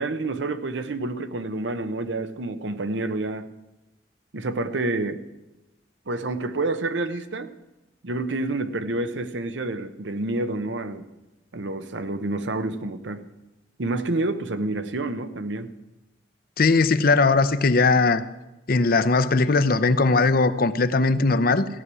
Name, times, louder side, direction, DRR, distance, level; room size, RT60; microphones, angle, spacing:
voice 1, 0.0-3.5 4.3-5.2 6.1-7.5 8.0-11.1 11.5-13.3 13.8-15.7, right 2 dB, 90° right, 0.9 m, -28 dB
voice 2, 16.6-18.2 18.7-21.7, left 3 dB, 55° left, 0.7 m, -19 dB
15.0 x 6.2 x 9.7 m
head